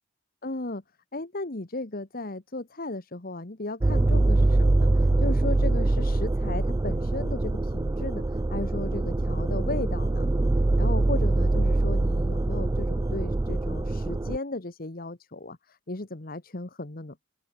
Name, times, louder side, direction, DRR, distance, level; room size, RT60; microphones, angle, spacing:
voice 1, 0.4-0.8 1.1-10.3 10.8-17.2, left 2 dB, 45° left, 1.4 m, -35 dB
sound 1, 3.8-14.4, right 2 dB, 15° right, 0.3 m, -24 dB
open air
head